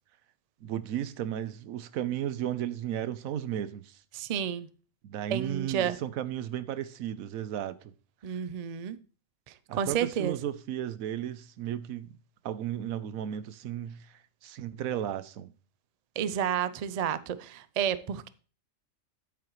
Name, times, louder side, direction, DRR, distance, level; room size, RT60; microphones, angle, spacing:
voice 1, 0.6-4.0 5.0-7.9 9.7-12.2 12.4-15.5, right 10 dB, 85° right, 1.1 m, -34 dB
voice 2, 4.1-4.7 5.3-6.0 8.2-9.0 9.5-10.3 16.2-18.3, right 8 dB, 60° right, 0.4 m, -31 dB
9.3 x 8.7 x 3.1 m
omnidirectional pair, 1.4 m